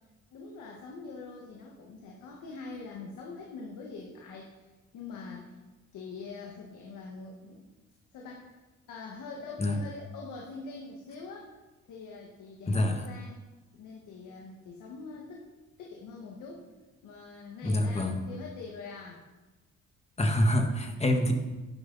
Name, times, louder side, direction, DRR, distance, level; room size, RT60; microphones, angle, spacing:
voice 1, 0.3-5.5 5.9-7.6 8.1-8.6 8.9-11.5 11.8-13.4 13.7-15.5 15.8-16.7 17.0-19.2, left 4 dB, 85° left, -1 dB, 1.7 m, -44 dB
voice 2, 12.7-13.1 17.6-18.3 20.2-21.3, left 1 dB, 20° left, 4 dB, 1.6 m, -26 dB
11.5 x 9.9 x 4.1 m, 1.2 s
cardioid pair, 90°, 30 cm